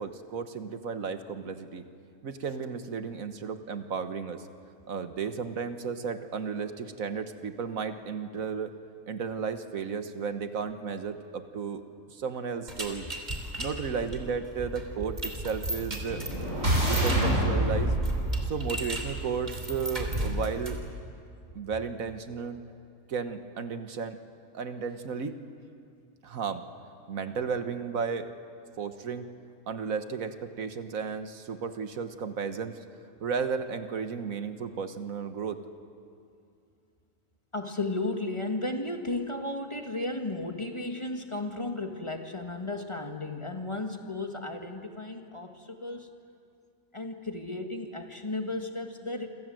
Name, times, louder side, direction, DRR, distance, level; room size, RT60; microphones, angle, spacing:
voice 1, 0.0-1.8 2.2-4.4 4.9-8.7 9.1-11.8 12.1-13.1 13.6-16.2 16.8-17.9 18.5-20.8 21.5-22.6 23.1-24.2 24.5-25.4 26.2-26.6 27.1-28.3 28.8-29.3 29.7-32.8 33.2-35.6, right 6 dB, 85° right, 9 dB, 1.7 m, -34 dB
sound 1, 12.7-20.9, right 1 dB, 30° right, 3.2 m, -36 dB
sound 2, 15.5-19.7, right 1 dB, 65° right, 7.1 m, -28 dB
voice 2, 37.5-46.1 46.9-49.3, left 2 dB, 20° left, 4 dB, 1.8 m, -34 dB
28.0 x 26.5 x 7.8 m, 2.4 s
omnidirectional pair, 1.4 m